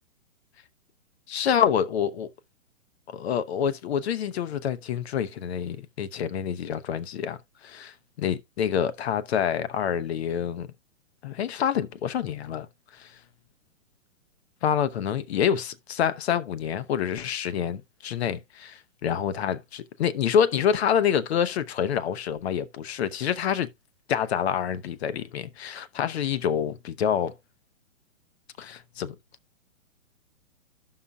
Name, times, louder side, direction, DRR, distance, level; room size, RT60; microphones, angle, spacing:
voice 1, 1.3-2.3 3.1-7.4 7.6-10.7 11.2-12.7 12.9-13.1 14.6-23.7 24.1-27.3 28.6-29.2, left 8 dB, 50° left, 0.8 m, -27 dB
13.5 x 5.7 x 2.3 m
hypercardioid pair, 135°, 40 cm